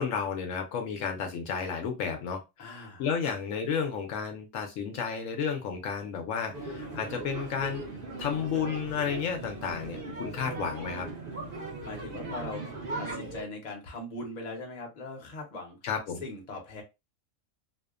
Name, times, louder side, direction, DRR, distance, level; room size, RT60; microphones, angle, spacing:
voice 1, 0.0-7.8 8.2-11.1 15.8-16.2, left 6 dB, 75° left, 4 dB, 0.9 m, -32 dB
voice 2, 2.6-3.3 11.8-12.6 13.0-15.8 16.2-16.8, left 2 dB, 40° left, 1 dB, 0.7 m, -40 dB
sound 1, 6.5-13.4, right 3 dB, 50° right, 0.8 m, -38 dB
2.7 x 2.1 x 2.3 m, 0.24 s
omnidirectional pair, 1.4 m